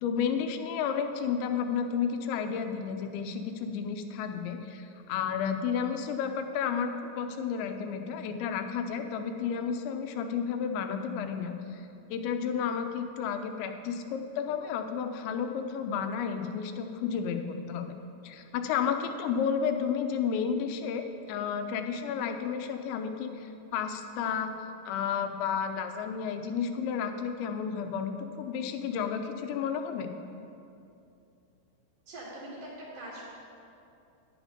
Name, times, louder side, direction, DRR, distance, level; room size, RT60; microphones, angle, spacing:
voice 1, 0.0-11.8 12.1-17.9 18.2-24.5 24.9-30.1, left 7 dB, 85° left, 7 dB, 3.0 m, -32 dB
voice 2, 32.1-33.2, right 1 dB, 50° right, -7 dB, 2.0 m, -42 dB
10.5 x 9.6 x 5.1 m, 2.7 s
omnidirectional pair, 5.2 m